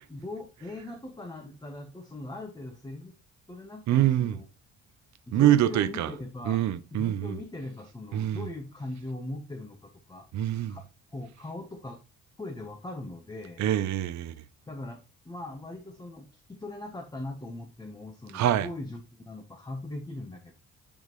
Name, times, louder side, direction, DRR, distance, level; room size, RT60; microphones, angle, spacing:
voice 1, 0.1-3.2 3.5-4.5 5.3-10.3 10.7-10.9 11.1-12.0 12.4-13.7 14.7-20.5, left 2 dB, 15° left, 1.0 m, -40 dB
voice 2, 3.9-4.4 5.3-6.1 6.5-7.4 8.1-8.4 10.3-10.8 13.6-14.3 18.3-18.7, right 12 dB, 65° right, 0.6 m, -24 dB
10.0 x 3.5 x 3.1 m
cardioid pair, 90°, 30 cm